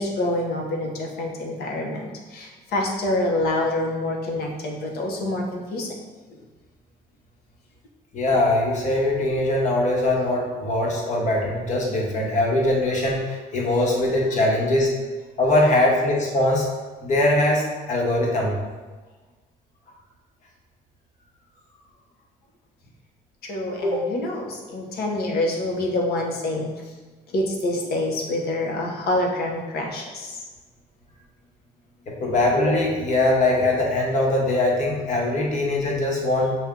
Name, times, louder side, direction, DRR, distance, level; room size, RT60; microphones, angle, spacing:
voice 1, 0.0-6.0 23.4-26.7 27.3-30.4, left 1 dB, 70° left, 0 dB, 1.0 m, -26 dB
voice 2, 8.1-14.9 15.4-16.7 17.0-18.6 23.8-24.0 32.1-36.5, left 1 dB, 45° left, -1 dB, 1.2 m, -21 dB
5.7 x 2.5 x 3.7 m, 1.3 s
cardioid pair, 110°, 17 cm